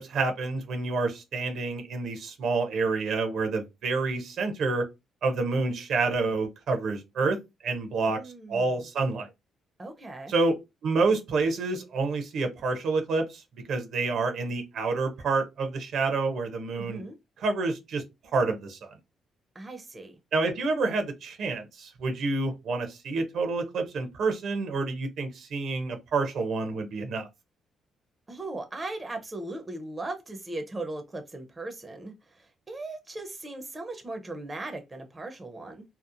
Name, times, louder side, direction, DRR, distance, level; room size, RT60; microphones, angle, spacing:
voice 1, 0.0-4.9 5.2-7.4 7.6-8.2 8.5-9.3 10.3-10.6 10.8-13.4 13.7-17.0 17.4-18.0 18.3-19.0 20.3-27.3, right 3 dB, 70° right, 0.7 m, -28 dB
voice 2, 8.1-8.8 9.8-10.3 16.7-17.2 19.5-20.2 28.3-35.8, right 2 dB, 25° right, 0.6 m, -38 dB
2.8 x 2.0 x 2.5 m
cardioid pair, 90°, 0 cm